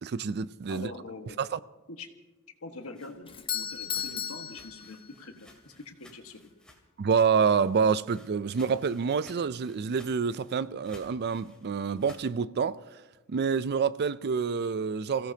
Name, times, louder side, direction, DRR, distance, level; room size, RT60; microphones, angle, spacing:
voice 1, 0.0-0.9 1.4-1.6 7.0-13.0 13.3-15.3, right 6 dB, 50° right, 0.4 m, -27 dB
voice 2, 0.7-1.4 1.9-2.1 2.6-6.5, left 3 dB, 75° left, 1.5 m, -44 dB
sound 1, 2.5-7.1 7.4-12.3, left 1 dB, 5° left, 2.5 m, -57 dB
Doorbell, 3.3-5.4, left 8 dB, 25° left, 0.8 m, -35 dB
29.0 x 16.5 x 2.8 m
head